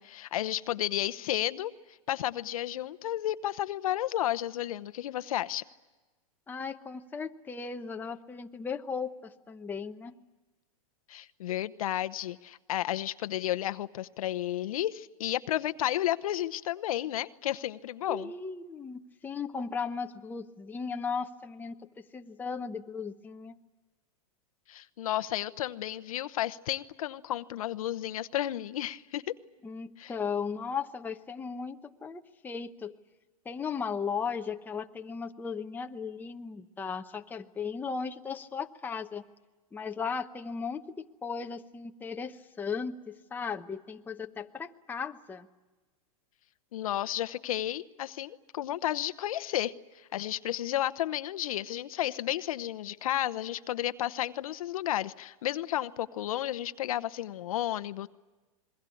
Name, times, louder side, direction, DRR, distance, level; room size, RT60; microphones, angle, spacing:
voice 1, 0.0-1.7 2.1-5.6 11.1-18.3 24.7-29.3 30.0-30.1 46.7-49.7 50.1-58.1, left 13 dB, 75° left, 14 dB, 0.9 m, -32 dB
voice 2, 6.5-10.1 18.1-23.6 29.6-33.0 33.4-39.2 39.7-45.5, left 5 dB, 10° left, 5 dB, 0.9 m, -36 dB
28.0 x 22.0 x 8.5 m, 1.2 s
hypercardioid pair, 135°, 18 cm